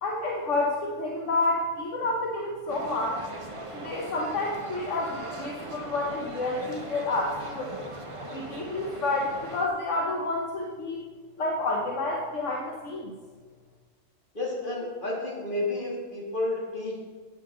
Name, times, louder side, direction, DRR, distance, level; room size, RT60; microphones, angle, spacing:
voice 1, 0.0-3.2 3.7-7.7 8.3-11.0 11.4-13.1, left 2 dB, 70° left, -2 dB, 1.4 m, -29 dB
sound 1, 2.7-9.7, right 1 dB, 25° right, 1.1 m, -40 dB
voice 2, 14.3-17.0, left 2 dB, 40° left, -4 dB, 2.8 m, -31 dB
13.5 x 8.9 x 3.9 m, 1.5 s
omnidirectional pair, 1.3 m